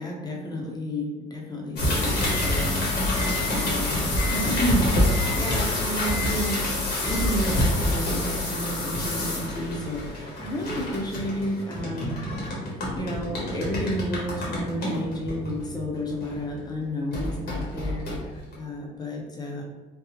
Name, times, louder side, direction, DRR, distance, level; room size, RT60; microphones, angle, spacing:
voice 1, 0.0-12.2 13.0-19.6, equal, 25° left, -2 dB, 0.8 m, -31 dB
sound 1, 1.8-16.6 17.1-18.6, left 1 dB, 75° left, 1.3 m, -27 dB
3.7 x 2.3 x 2.9 m, 1.2 s
cardioid pair, 110°, 17 cm